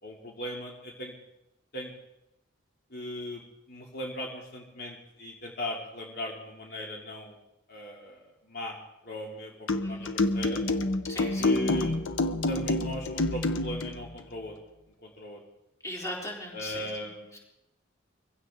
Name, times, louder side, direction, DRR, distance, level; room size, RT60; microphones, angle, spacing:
voice 1, 0.0-1.1 1.7-1.9 2.9-7.4 7.7-8.8 9.0-10.6 11.4-12.0 12.5-14.5 15.0-15.4 16.5-17.3, left 1 dB, 55° left, -2 dB, 2.9 m, -38 dB
sound 1, 9.7-14.0, left 2 dB, 80° left, 1.1 m, -28 dB
voice 2, 9.8-10.1 11.1-11.5 15.8-16.9 17.3-17.4, left 1 dB, 15° left, -2 dB, 4.2 m, -38 dB
23.5 x 16.0 x 3.8 m, 0.90 s
head